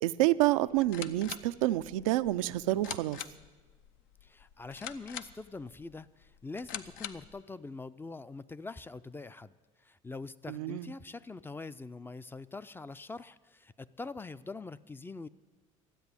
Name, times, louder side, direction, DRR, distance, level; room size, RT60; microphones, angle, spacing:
voice 1, 0.0-3.2 10.5-10.9, right 16 dB, 90° right, 12 dB, 0.4 m, -28 dB
sound 1, 0.7-7.4, left 10 dB, 75° left, 0.7 m, -45 dB
voice 2, 4.2-9.5 9.8-15.3, left 3 dB, 10° left, 14 dB, 0.4 m, -44 dB
12.5 x 8.0 x 9.6 m, 1.3 s
supercardioid pair, 85°, 17 cm